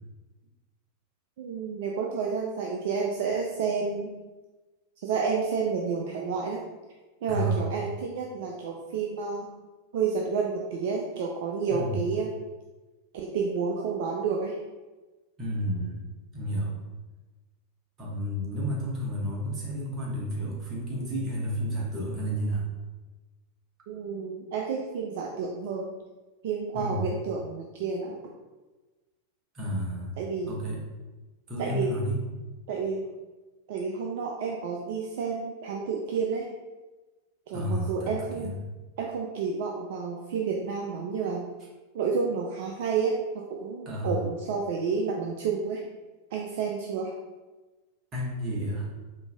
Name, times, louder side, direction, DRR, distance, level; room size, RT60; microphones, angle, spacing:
voice 1, 1.4-4.1 5.0-6.6 7.2-9.5 9.9-12.3 13.1-14.5 23.9-25.9 26.4-28.1 30.2-30.5 31.6-31.9 32.7-33.1 33.7-36.5 37.5-38.5 39.0-41.5 41.9-45.8 46.3-47.1, right 5 dB, 50° right, 0 dB, 0.4 m, -30 dB
voice 2, 7.3-7.6 11.7-12.0 15.4-16.0 16.3-16.8 18.0-22.7 26.7-27.1 29.5-30.1 30.5-30.8 31.5-32.2 37.5-38.6 43.8-44.3 48.1-48.9, equal, 25° right, -4 dB, 1.1 m, -31 dB
4.4 x 2.7 x 2.3 m, 1.2 s
figure-of-eight pair, 90°, 0 cm